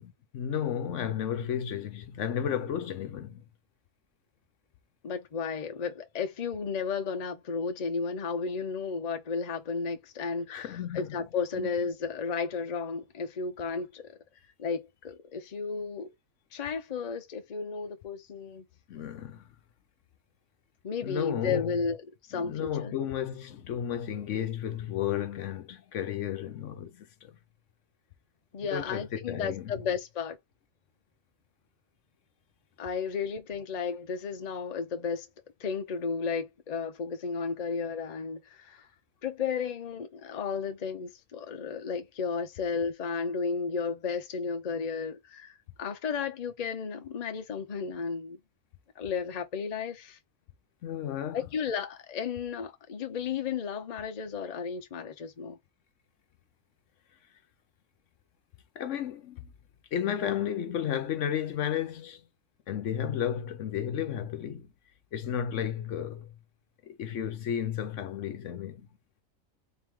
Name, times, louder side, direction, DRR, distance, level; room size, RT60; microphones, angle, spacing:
voice 1, 0.3-3.4 10.5-11.2 11.6-11.7 18.9-19.5 21.0-21.8 22.3-27.4 28.7-29.7 50.8-51.4 58.8-59.5 59.9-62.2 62.7-64.7 65.1-66.3 66.8-68.9, left 9 dB, 70° left, 0.9 m, -33 dB
voice 2, 5.0-14.2 14.6-16.1 16.5-18.6 20.8-22.0 22.3-23.0 28.5-30.4 32.8-35.3 35.6-38.9 39.2-48.4 49.0-50.2 51.3-55.6, left 5 dB, 40° left, 0.6 m, -33 dB
3.6 x 3.1 x 3.5 m
omnidirectional pair, 1.4 m